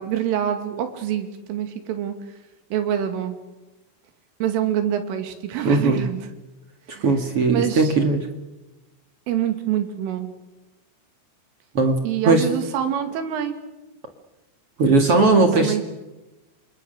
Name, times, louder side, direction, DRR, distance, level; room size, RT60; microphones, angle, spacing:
voice 1, 0.0-2.2 2.7-3.4 4.4-6.2 6.9-7.0 7.5-7.9 9.3-10.3 12.0-13.6 15.5-15.8, right 10 dB, 80° right, 7 dB, 5.0 m, -25 dB
voice 2, 5.6-6.1 7.0-8.3 11.7-12.0 12.2-12.5 14.8-15.8, right 3 dB, 45° right, 5 dB, 2.1 m, -18 dB
29.5 x 27.0 x 6.7 m, 1.1 s
omnidirectional pair, 5.6 m